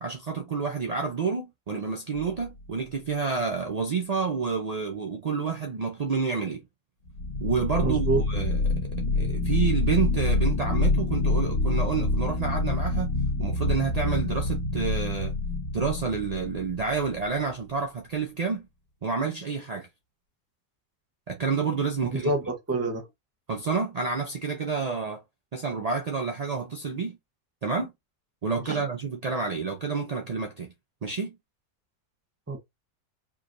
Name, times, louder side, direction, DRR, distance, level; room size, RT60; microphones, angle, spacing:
voice 1, 0.0-6.6 7.4-8.9 9.2-15.3 15.7-18.6 19.0-19.9 21.3-22.3 23.5-25.2 25.5-27.2 27.6-27.9 28.4-30.7 31.0-31.3, right 5 dB, 70° right, 0.3 m, -29 dB
sound 1, 2.2-2.7 7.1-17.3, left 2 dB, 75° left, 1.7 m, -27 dB
voice 2, 7.8-8.2 22.1-23.0 28.7-28.8 32.5-32.6, right 2 dB, 15° right, 0.8 m, -27 dB
4.7 x 3.0 x 2.5 m
omnidirectional pair, 1.5 m